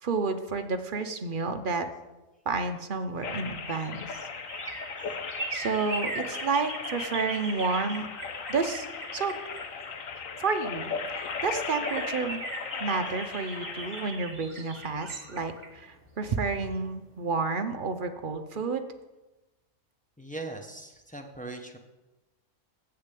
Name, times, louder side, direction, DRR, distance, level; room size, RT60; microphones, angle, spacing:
voice 1, 0.0-1.9 2.5-4.1 5.5-8.1 8.5-8.9 9.1-9.4 10.4-10.9 11.4-12.4 12.8-18.9, right 4 dB, 45° right, 7 dB, 0.7 m, -30 dB
sound 1, 3.2-14.1, left 5 dB, 65° left, 1.3 m, -37 dB
sound 2, 3.4-10.2 10.7-10.8 11.0-16.8 17.2-17.3, right 2 dB, 30° right, 1.7 m, -40 dB
voice 2, 20.2-21.8, right 2 dB, 5° left, 2 dB, 0.8 m, -40 dB
7.8 x 6.8 x 8.3 m, 1.1 s
omnidirectional pair, 1.6 m